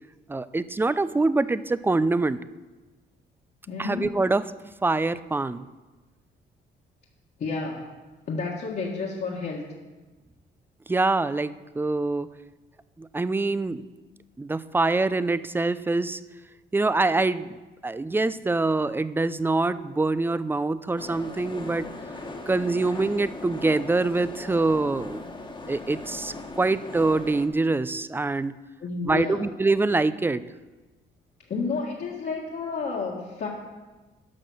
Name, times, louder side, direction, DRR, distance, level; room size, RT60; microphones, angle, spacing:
voice 1, 0.3-2.4 3.8-4.5 4.8-5.6 10.9-12.3 13.0-13.8 14.4-16.2 16.7-17.6 17.8-21.9 22.5-25.2 25.7-28.6 29.0-30.4, right 3 dB, 10° right, 15 dB, 0.4 m, -25 dB
voice 2, 3.7-4.1 7.4-7.8 8.3-9.6 28.8-29.4 31.5-33.5, left 4 dB, 55° left, -5 dB, 1.8 m, -30 dB
sound 1, 21.0-27.5, left 2 dB, 25° left, 1.5 m, -39 dB
12.0 x 6.0 x 6.3 m, 1.2 s
cardioid pair, 90°, 20 cm